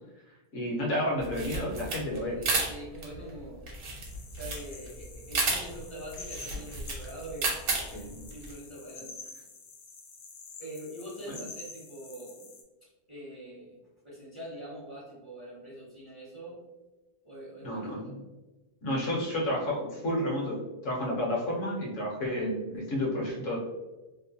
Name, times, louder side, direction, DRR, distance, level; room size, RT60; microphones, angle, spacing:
voice 1, 0.5-2.4 7.9-8.3 17.6-18.1 18.8-23.6, left 1 dB, 60° left, -3 dB, 1.0 m, -31 dB
sound 1, 1.2-8.5, right 3 dB, 70° right, 1.2 m, -33 dB
voice 2, 2.3-3.7 4.3-7.5 8.3-9.2 10.6-12.5 13.1-13.8 14.0-16.6 17.2-18.2, right 1 dB, 30° right, -8 dB, 0.6 m, -44 dB
sound 2, 4.0-12.6, left 4 dB, 85° left, 1.2 m, -48 dB
2.9 x 2.1 x 2.6 m, 1.1 s
omnidirectional pair, 1.7 m